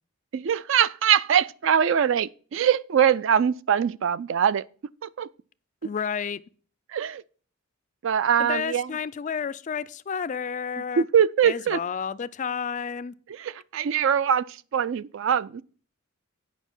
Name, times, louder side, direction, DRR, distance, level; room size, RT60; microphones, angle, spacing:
voice 1, 0.3-4.6 5.0-5.3 5.8-5.9 6.9-7.2 8.0-9.0 11.0-11.8 13.3-15.6, right 8 dB, 60° right, 0.3 m, -23 dB
voice 2, 5.8-6.4 8.4-11.0 11.4-13.1, left 6 dB, 35° left, 0.3 m, -31 dB
9.4 x 5.5 x 5.4 m
head